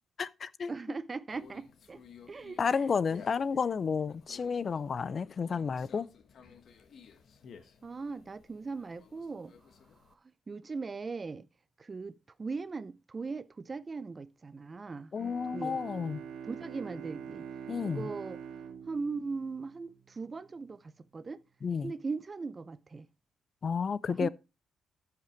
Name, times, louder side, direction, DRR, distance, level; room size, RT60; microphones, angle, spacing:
voice 1, 0.2-0.7 2.6-6.1 15.1-16.2 17.7-18.1 21.6-21.9 23.6-24.3, left 6 dB, 35° left, 0.5 m, -31 dB
voice 2, 0.7-2.0 2.3-2.6 7.8-9.5 10.5-11.5 11.8-15.1 15.5-15.8 16.5-17.4 17.8-18.4 18.9-21.4 21.8-23.1 24.1-24.3, right 4 dB, 25° right, 0.5 m, -39 dB
Conversation, 1.3-10.1, left 6 dB, 50° left, 1.2 m, -56 dB
Bowed string instrument, 15.1-20.1, right 7 dB, 80° right, 1.5 m, -44 dB
13.5 x 5.8 x 4.4 m
cardioid pair, 155°, 0 cm